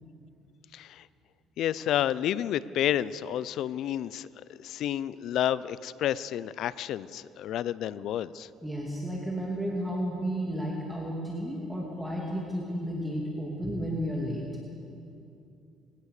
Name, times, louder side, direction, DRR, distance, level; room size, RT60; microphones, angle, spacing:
voice 1, 0.7-1.1 1.6-4.3 4.6-8.5, left 11 dB, 65° left, 18 dB, 0.6 m, -30 dB
voice 2, 8.6-14.5, equal, 5° right, -3 dB, 2.7 m, -32 dB
21.5 x 18.0 x 6.7 m, 2.7 s
cardioid pair, 105°, 0 cm